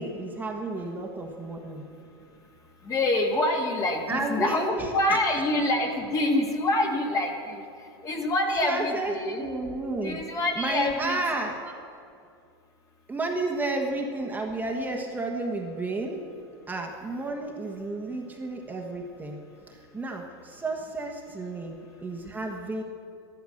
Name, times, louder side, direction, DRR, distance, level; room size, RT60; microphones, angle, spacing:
voice 1, 0.0-1.8 4.1-5.2 8.6-10.2 10.5-11.7 13.1-16.2 16.7-19.4 19.7-22.8, right 2 dB, 10° right, 0 dB, 1.3 m, -32 dB
voice 2, 2.9-7.6 8.0-9.5 10.0-11.2, left 1 dB, 25° left, 2 dB, 1.9 m, -26 dB
13.0 x 12.0 x 6.5 m, 2.4 s
supercardioid pair, 125°, 13 cm